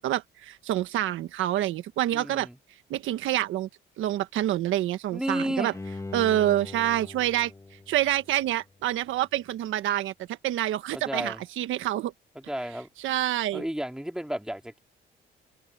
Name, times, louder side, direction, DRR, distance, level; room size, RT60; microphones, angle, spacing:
voice 1, 0.0-2.5 2.9-3.7 4.0-5.7 6.1-7.5 7.9-12.1 13.0-13.6, right 13 dB, 85° right, 1.4 m, -27 dB
voice 2, 2.1-2.5 5.1-5.7 10.9-11.4 12.4-12.9 13.5-14.8, equal, 5° right, 2.6 m, -32 dB
Bowed string instrument, 5.7-8.8 9.3-9.4, left 2 dB, 15° left, 2.4 m, -41 dB
open air
cardioid pair, 90°, 20 cm